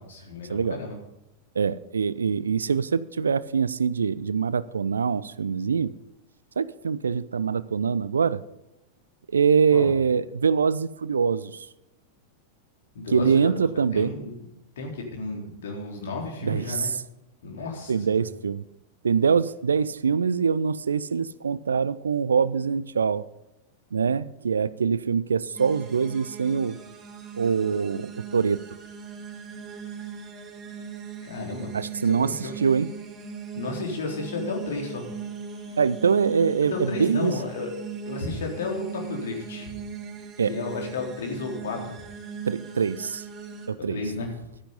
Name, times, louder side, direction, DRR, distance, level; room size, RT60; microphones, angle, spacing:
voice 1, 0.1-0.9 9.7-9.9 12.9-13.5 13.9-14.5 14.8-16.9 17.4-18.2 31.2-31.7 32.0-32.6 33.6-35.0 36.7-37.7 38.1-39.7 40.5-42.0 43.8-44.3, left 3 dB, 60° left, 3.9 m, -33 dB
voice 2, 1.5-5.9 6.6-8.4 9.3-11.7 13.1-14.2 16.4-17.0 17.9-18.6 19.0-23.2 23.9-26.8 27.3-28.6 31.7-32.9 35.8-37.3 40.4-40.5 42.5-43.2 43.7-44.0, right 6 dB, 70° right, 0.5 m, -24 dB
sound 1, 25.6-43.7, right 6 dB, 25° right, 4.5 m, -39 dB
13.0 x 10.0 x 5.4 m
figure-of-eight pair, 90°, 0 cm